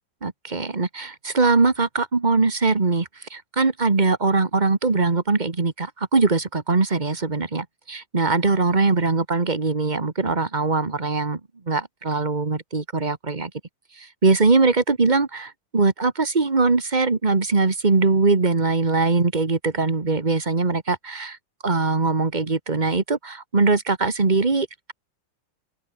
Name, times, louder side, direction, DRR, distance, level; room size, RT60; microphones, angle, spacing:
voice 1, 0.2-11.4 11.7-13.5 14.0-21.4 21.6-24.9, right 3 dB, 25° right, 1.7 m, -21 dB
open air
omnidirectional pair, 2.0 m